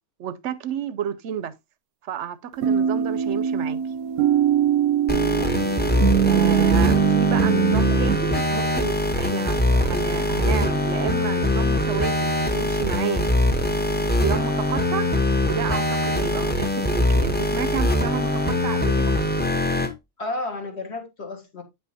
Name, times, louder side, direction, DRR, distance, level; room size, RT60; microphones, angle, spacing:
voice 1, 0.2-1.5 2.0-3.8 6.2-13.3 14.2-15.1 15.4-19.1, right 8 dB, 65° right, 0.8 m, -30 dB
sound 1, 2.6-8.2, right 9 dB, 90° right, 1.1 m, -21 dB
sound 2, 5.1-19.9, left 1 dB, 10° left, 0.5 m, -22 dB
voice 2, 5.4-5.8 20.2-21.6, left 2 dB, 50° left, 1.8 m, -33 dB
9.0 x 5.5 x 2.7 m
omnidirectional pair, 1.5 m